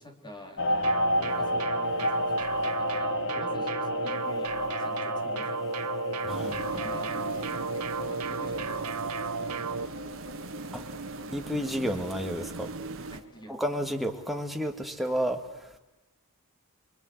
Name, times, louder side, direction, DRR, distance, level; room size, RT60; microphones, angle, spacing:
voice 1, 0.0-9.0 9.4-10.0 11.2-12.2 13.1-13.9, equal, 20° left, 4 dB, 3.4 m, -49 dB
sound 1, 0.6-11.9 12.3-12.6, left 1 dB, 60° left, 0.9 m, -32 dB
sound 2, 0.8-9.9, right 5 dB, 85° right, 1.0 m, -33 dB
voice 2, 6.2-6.5 10.7-10.8 11.3-12.7 13.5-15.4, equal, ahead, 3 dB, 2.0 m, -31 dB
sound 3, 6.3-13.2, right 3 dB, 65° right, 1.6 m, -40 dB
26.5 x 23.5 x 9.7 m, 1.0 s
head